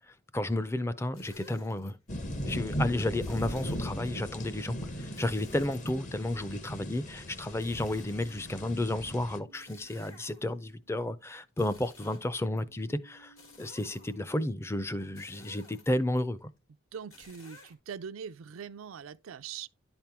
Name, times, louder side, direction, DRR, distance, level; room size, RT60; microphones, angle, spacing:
voice 1, 0.1-2.0 2.5-16.5, left 1 dB, 15° left, 0.4 m, -32 dB
sound 1, 1.1-1.9 3.2-4.1 5.1-6.4 7.6-8.7 9.5-10.7 11.5-12.6 13.4-14.3 15.2-16.2 17.1-17.7, left 2 dB, 80° left, 2.8 m, -55 dB
sound 2, 2.1-9.4, equal, 40° left, 0.8 m, -38 dB
sound 3, 6.0-7.1 7.7-11.6 12.6-15.0, left 2 dB, 60° left, 1.3 m, -61 dB
voice 2, 16.9-19.7, right 7 dB, 85° right, 0.4 m, -42 dB
10.5 x 4.4 x 3.5 m
head